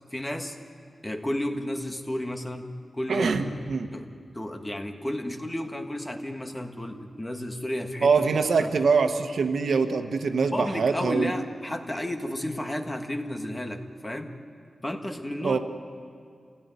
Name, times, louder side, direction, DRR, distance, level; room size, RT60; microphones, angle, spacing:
voice 1, 0.1-0.6 1.0-3.6 3.9-4.1 4.3-8.1 8.6-8.7 10.5-14.3 14.8-15.6, left 1 dB, 15° left, 4 dB, 1.6 m, -32 dB
voice 2, 3.1-3.9 8.0-11.3 15.4-15.6, right 5 dB, 90° right, 7 dB, 1.4 m, -24 dB
28.0 x 17.5 x 9.7 m, 2.3 s
wide cardioid pair, 140°, 0 cm